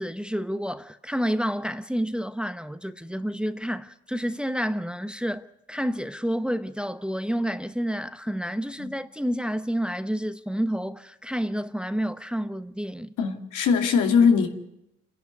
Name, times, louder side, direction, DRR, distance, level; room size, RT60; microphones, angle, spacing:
voice 1, 0.0-13.1, equal, 5° right, 0.9 m, -29 dB
voice 2, 13.2-14.5, left 6 dB, 85° left, 2.6 m, -21 dB
28.5 x 11.0 x 9.5 m
cardioid pair, 90°, 30 cm